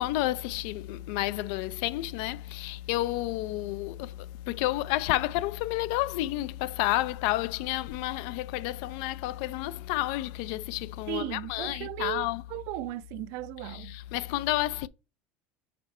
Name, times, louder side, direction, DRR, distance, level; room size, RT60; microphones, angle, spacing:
voice 1, 0.0-12.5 13.6-14.9, left 16 dB, 65° left, 0.4 m, -30 dB
voice 2, 11.1-14.0, right 17 dB, 60° right, 0.5 m, -36 dB
5.1 x 4.2 x 5.4 m
supercardioid pair, 140°, 6 cm